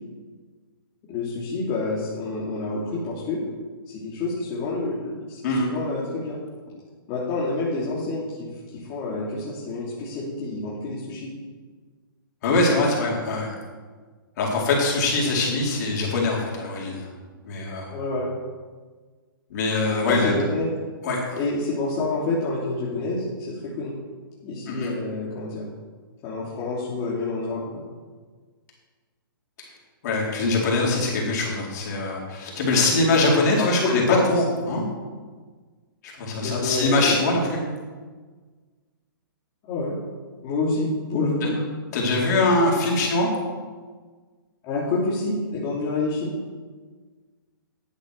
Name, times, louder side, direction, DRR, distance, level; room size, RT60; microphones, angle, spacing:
voice 1, 1.1-3.5 3.9-6.4 7.1-11.3 17.9-18.3 20.0-20.7 21.4-24.0 24.4-25.7 26.2-27.9 32.7-32.9 33.6-34.4 36.4-37.2 39.7-40.0 40.4-41.6 44.6-46.3, left 3 dB, 30° left, -6 dB, 2.9 m, -28 dB
voice 2, 12.4-13.6 14.4-17.1 17.4-17.9 19.5-20.4 21.0-21.4 24.7-24.9 30.0-33.8 34.1-34.8 36.0-37.6 41.9-43.3, left 2 dB, 50° left, -3 dB, 4.5 m, -23 dB
11.5 x 8.3 x 6.8 m, 1.4 s
hypercardioid pair, 140°, 12 cm